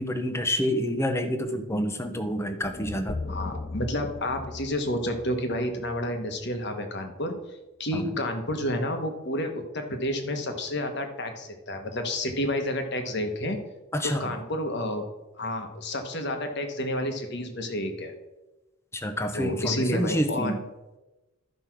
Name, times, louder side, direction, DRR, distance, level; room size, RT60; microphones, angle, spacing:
voice 1, 0.0-3.2 7.9-8.1 13.9-14.2 18.9-20.6, equal, 10° left, 7 dB, 0.8 m, -28 dB
sound 1, 2.6-6.8, left 3 dB, 30° left, 0.4 m, -38 dB
voice 2, 3.3-7.3 7.8-13.6 14.0-15.0 15.4-18.1 19.3-20.6, left 1 dB, 50° left, 5 dB, 1.3 m, -30 dB
12.5 x 5.4 x 6.0 m, 1.1 s
head